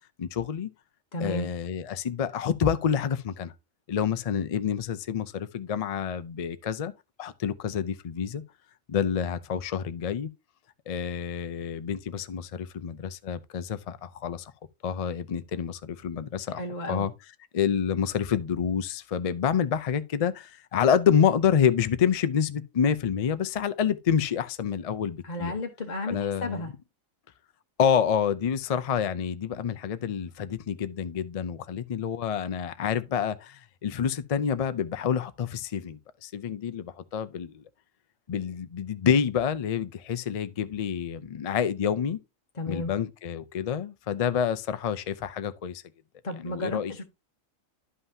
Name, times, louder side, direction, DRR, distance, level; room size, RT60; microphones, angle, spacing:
voice 1, 0.2-0.7 1.2-3.5 3.9-6.9 7.2-8.4 8.9-10.3 10.9-14.5 14.8-16.6 16.9-17.1 17.5-25.5 26.1-26.6 27.8-37.6 38.3-42.2 42.7-45.8 46.4-46.9, left 8 dB, 65° left, 0.3 m, -28 dB
voice 2, 1.1-1.5 16.6-17.1 25.2-26.7 42.6-42.9 46.2-47.0, left 1 dB, 35° left, 1.1 m, -33 dB
11.0 x 5.6 x 2.7 m
omnidirectional pair, 1.4 m